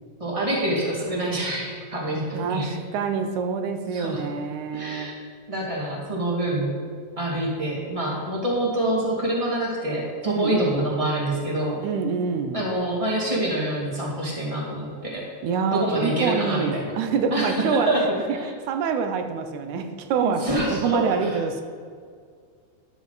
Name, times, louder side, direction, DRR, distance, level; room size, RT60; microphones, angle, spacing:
voice 1, 0.2-2.8 3.9-4.3 4.7-5.1 5.5-6.7 7.2-11.8 12.5-15.3 15.7-17.0 17.3-18.4 20.2-21.4, right 1 dB, 15° right, -4 dB, 1.4 m, -26 dB
voice 2, 2.4-5.1 10.3-10.9 11.8-12.7 15.4-17.9 18.3-21.6, right 6 dB, 75° right, 7 dB, 1.9 m, -26 dB
12.5 x 7.2 x 4.0 m, 2.1 s
omnidirectional pair, 3.9 m